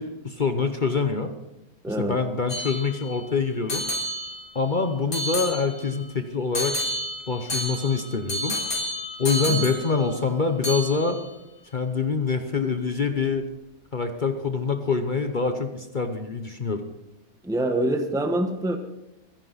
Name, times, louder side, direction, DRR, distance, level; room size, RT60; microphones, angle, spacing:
voice 1, 0.0-1.3 1.9-3.9 4.5-6.8 7.3-8.6 9.2-11.2 11.7-13.4 13.9-16.8, left 4 dB, 40° left, 7 dB, 1.0 m, -25 dB
voice 2, 1.8-2.2 9.5-9.6 17.4-18.8, right 1 dB, 5° right, 6 dB, 1.1 m, -25 dB
sound 1, 2.5-3.2 3.7-4.7 5.1-6.0 6.5-10.4 10.6-11.3, equal, 75° left, 3.7 m, -31 dB
24.0 x 10.5 x 4.1 m, 0.96 s
omnidirectional pair, 1.5 m